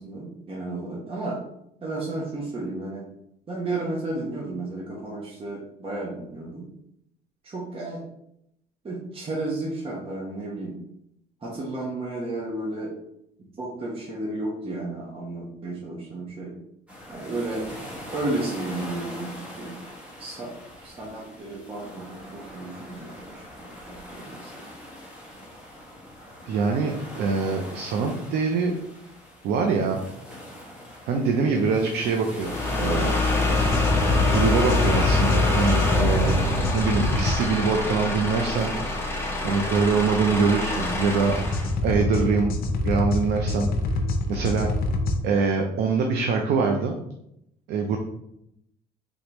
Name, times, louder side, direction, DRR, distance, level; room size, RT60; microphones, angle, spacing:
voice 1, 0.0-1.4 1.8-3.0 3.5-6.7 7.4-8.0 8.8-10.8 11.4-12.9 13.4-16.5 17.1-17.7 18.1-19.8 20.2-20.5 20.8-24.7, right 2 dB, 35° right, -4 dB, 1.0 m, -33 dB
sound 1, 16.9-36.4, left 1 dB, 5° right, 1.1 m, -42 dB
voice 2, 26.5-28.7 29.4-30.0 31.1-33.1 34.3-36.4 36.7-38.7 39.4-41.4 41.8-42.5 42.8-43.7 44.3-44.7 45.2-47.0 47.7-48.0, right 4 dB, 75° right, 2 dB, 0.6 m, -24 dB
sound 2, 32.4-41.7, left 2 dB, 15° left, 1.0 m, -25 dB
sound 3, 33.5-37.4 41.3-45.2, left 2 dB, 60° left, 0.7 m, -26 dB
3.7 x 3.6 x 3.0 m, 0.78 s
cardioid pair, 110°, 17 cm